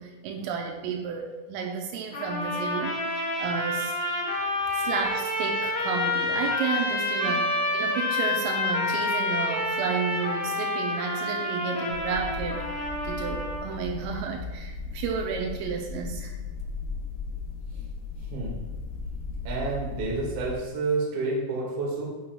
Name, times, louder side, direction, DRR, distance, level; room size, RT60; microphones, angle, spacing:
voice 1, 0.0-3.0 3.4-3.9 4.7-12.7 13.0-16.3, right 6 dB, 85° right, 2 dB, 3.1 m, -32 dB
sound 1, 2.1-13.7, left 2 dB, 65° left, 1.4 m, -28 dB
sound 2, 11.9-20.6, left 4 dB, 85° left, 3.4 m, -36 dB
voice 2, 19.4-22.0, right 3 dB, 50° right, -3 dB, 2.5 m, -29 dB
9.2 x 8.0 x 2.4 m, 1.3 s
omnidirectional pair, 5.9 m